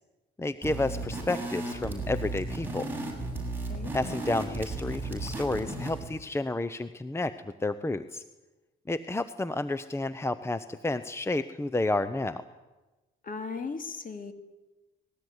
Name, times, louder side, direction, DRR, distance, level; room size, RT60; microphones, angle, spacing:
voice 1, 0.4-2.9 3.9-8.2 8.9-12.4, left 2 dB, 15° left, 13 dB, 0.8 m, -31 dB
sound 1, 0.6-6.1, right 2 dB, 10° right, 7.2 m, -35 dB
voice 2, 13.2-14.3, left 4 dB, 45° left, 8 dB, 2.6 m, -37 dB
20.0 x 18.0 x 9.7 m, 1.1 s
cardioid pair, 90°, 20 cm